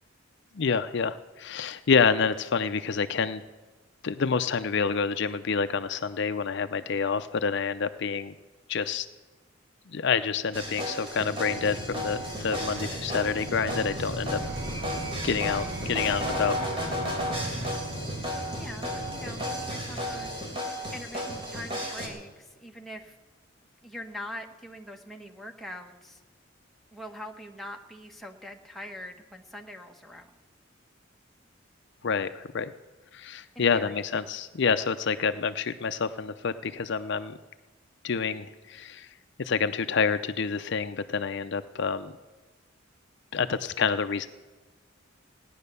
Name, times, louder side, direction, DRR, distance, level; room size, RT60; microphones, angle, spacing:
voice 1, 0.6-3.4 4.0-8.3 8.7-9.1 9.9-14.4 15.2-16.6 32.0-32.7 33.1-37.4 38.0-39.1 39.4-42.1 43.3-44.3, left 5 dB, 60° left, 11 dB, 0.6 m, -28 dB
sound 1, 10.5-22.1, equal, 30° right, 3.5 m, -34 dB
sound 2, 11.4-20.3, right 1 dB, 75° right, 2.2 m, -37 dB
voice 2, 18.6-20.4 20.9-23.2 23.8-26.2 26.9-30.3 33.5-34.2, equal, ahead, 1 dB, 1.2 m, -43 dB
17.0 x 10.5 x 6.8 m, 1.3 s
head